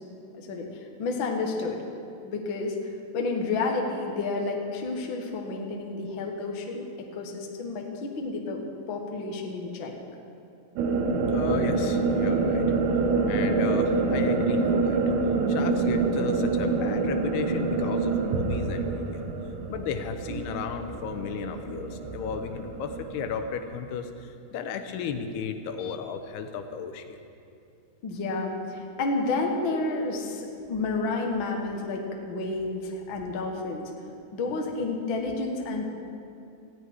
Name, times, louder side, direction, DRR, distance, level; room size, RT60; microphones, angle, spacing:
voice 1, 0.3-0.7 1.0-1.8 2.2-2.7 3.1-8.6 8.9-9.9 28.0-33.9 34.3-35.8, left 3 dB, 60° left, 1 dB, 1.3 m, -30 dB
sound 1, 10.8-23.4, right 3 dB, 75° right, 2.9 m, -26 dB
voice 2, 11.3-12.7 13.3-15.0 15.5-19.3 19.7-27.2, left 6 dB, 80° left, 7 dB, 2.7 m, -34 dB
19.0 x 15.0 x 4.8 m, 2.6 s
omnidirectional pair, 4.9 m